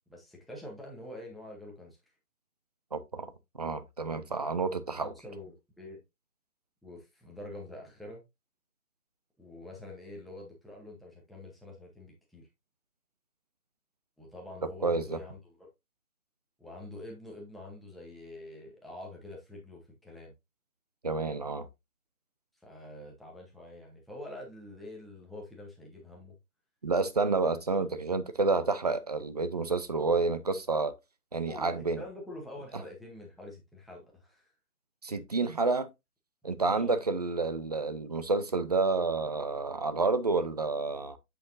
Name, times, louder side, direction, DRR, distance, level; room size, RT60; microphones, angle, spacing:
voice 1, 0.1-2.0 5.0-6.0 6.8-8.2 9.4-12.5 14.2-15.7 16.6-20.3 22.6-26.3 27.8-27.9 31.4-34.5 35.1-35.2 36.6-37.0, left 1 dB, ahead, 0.8 m, -46 dB
voice 2, 2.9-3.3 3.6-5.1 14.8-15.2 21.0-21.7 26.8-30.9 31.3-32.0 35.0-35.9 36.4-41.2, right 3 dB, 25° right, 0.5 m, -29 dB
8.2 x 6.8 x 2.5 m
figure-of-eight pair, 145°, 46 cm